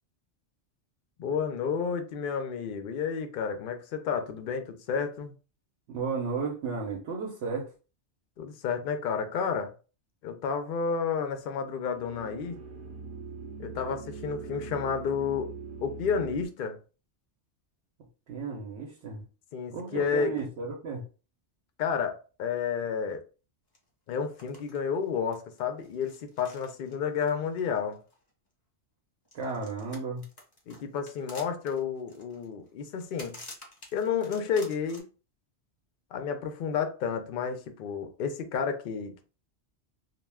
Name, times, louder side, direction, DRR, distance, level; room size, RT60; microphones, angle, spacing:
voice 1, 1.2-5.3 8.4-9.7 10.2-12.6 13.6-15.5 15.8-16.8 19.5-20.3 21.8-23.2 24.1-28.0 30.7-33.4 33.9-35.0 36.1-39.2, left 6 dB, 60° left, 0.6 m, -31 dB
voice 2, 5.9-7.7 18.3-19.2 19.7-21.0 29.3-30.2, right 4 dB, 75° right, 1.0 m, -34 dB
sound 1, 11.4-16.5, right 5 dB, 55° right, 0.6 m, -42 dB
sound 2, 23.7-23.8 24.1-24.8 25.0-28.3 29.3-35.0, left 1 dB, 25° left, 0.7 m, -49 dB
2.3 x 2.2 x 3.3 m
omnidirectional pair, 1.2 m